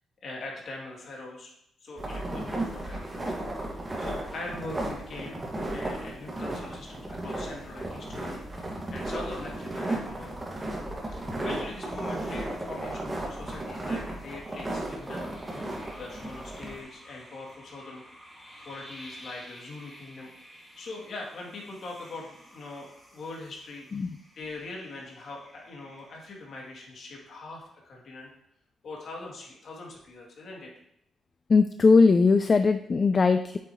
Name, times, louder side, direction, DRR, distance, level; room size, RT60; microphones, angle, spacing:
voice 1, 0.2-1.5 1.8-3.7 4.0-5.4 5.7-10.4 11.1-18.0 18.3-20.3 20.7-24.1 24.3-28.3 28.8-30.7, left 2 dB, 60° left, -2 dB, 2.8 m, -42 dB
sound 1, 2.0-16.8, right 1 dB, 20° right, 2.0 m, -35 dB
sound 2, 10.9-27.1, equal, 5° left, 3.3 m, -52 dB
voice 2, 31.5-33.6, left 4 dB, 35° left, 9 dB, 0.4 m, -20 dB
8.4 x 7.7 x 3.1 m, 0.76 s
cardioid pair, 110°, 0 cm